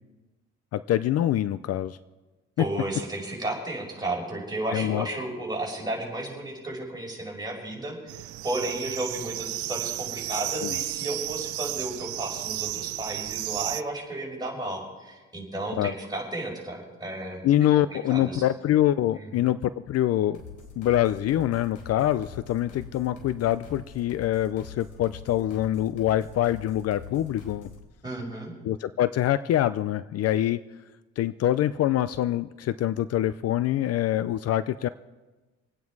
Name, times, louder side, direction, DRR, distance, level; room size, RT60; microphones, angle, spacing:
voice 1, 0.7-2.0 4.7-5.1 10.6-10.7 15.8-15.9 17.4-20.4 20.8-27.7 28.6-30.6 31.2-34.9, left 12 dB, 55° left, 15 dB, 0.5 m, -25 dB
voice 2, 2.6-17.4 17.9-18.4 19.2-19.5 28.0-28.5, right 2 dB, 15° right, -1 dB, 5.5 m, -33 dB
sound 1, 8.1-13.8, right 18 dB, 90° right, 0.6 m, -33 dB
sound 2, 20.3-27.9, left 5 dB, 85° left, 3.7 m, -45 dB
26.0 x 9.3 x 4.7 m, 1.2 s
cardioid pair, 105°, 29 cm